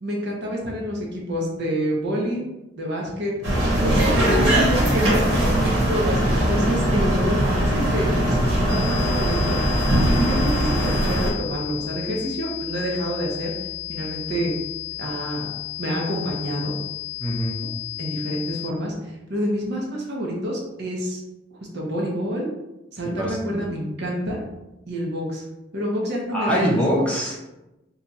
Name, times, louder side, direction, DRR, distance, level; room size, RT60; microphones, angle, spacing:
voice 1, 0.0-2.4 2.8-3.3 3.8-13.5 13.9-14.5 15.0-15.5 15.8-16.7 18.0-21.2 21.7-22.5 22.9-24.4 24.9-25.4 25.7-26.8, equal, 60° right, -2 dB, 0.8 m, -28 dB
sound 1, 3.4-11.3, equal, 85° right, 1.1 m, -20 dB
sound 2, 7.3-18.5, equal, 20° right, 0.9 m, -39 dB
voice 2, 7.8-8.4 17.2-17.6 23.0-23.8 26.3-27.4, equal, 5° left, -5 dB, 0.7 m, -25 dB
sound 3, 8.7-18.7, left 17 dB, 55° left, 0.7 m, -34 dB
2.7 x 2.3 x 4.0 m, 0.97 s
head